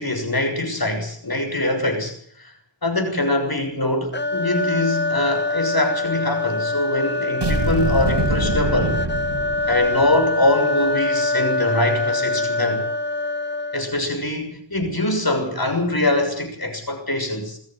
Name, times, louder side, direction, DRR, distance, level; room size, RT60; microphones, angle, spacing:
voice 1, 0.0-2.5 2.8-9.0 9.7-12.8 13.7-17.6, left 2 dB, 50° left, 5 dB, 6.5 m, -23 dB
sound 1, 4.1-14.1, left 2 dB, 25° left, 0.9 m, -24 dB
sound 2, 7.4-10.2, right 2 dB, 65° right, 4.3 m, -24 dB
22.0 x 14.0 x 9.1 m, 0.63 s
wide cardioid pair, 50°, 45 cm